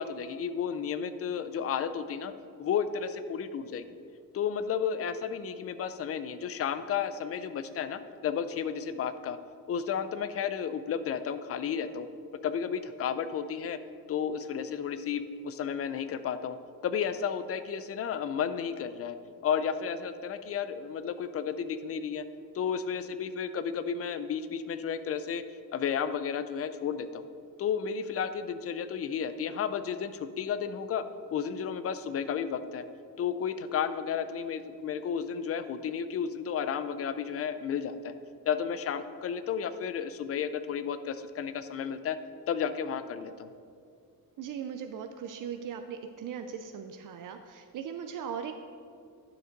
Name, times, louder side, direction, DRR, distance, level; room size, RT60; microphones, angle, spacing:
voice 1, 0.0-2.3 2.6-3.9 4.3-9.4 9.7-12.1 12.4-13.8 14.1-16.6 16.8-19.2 19.4-22.2 22.5-25.4 25.7-27.2 27.6-31.0 31.3-32.8 33.2-38.1 38.5-42.2 42.5-43.5, left 7 dB, 45° left, 12 dB, 0.4 m, -32 dB
voice 2, 44.4-48.5, right 7 dB, 65° right, 6 dB, 0.5 m, -39 dB
10.5 x 6.8 x 3.9 m, 2.3 s
wide cardioid pair, 175°, 35 cm